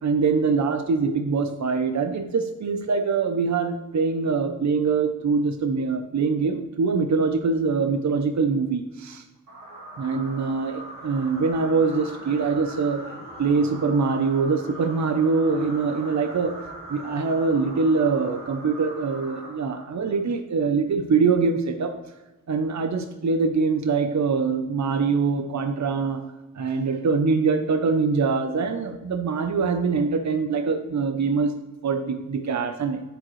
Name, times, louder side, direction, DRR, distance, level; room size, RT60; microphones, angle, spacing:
voice 1, 0.0-9.2 10.0-13.0 13.4-16.6 16.9-22.0 22.5-26.2 26.6-31.5 31.8-33.0, right 4 dB, 60° right, 6 dB, 0.6 m, -23 dB
sound 1, 9.5-20.2, right 1 dB, 80° right, 1.9 m, -41 dB
10.0 x 7.5 x 3.1 m, 1.1 s
wide cardioid pair, 100°, 32 cm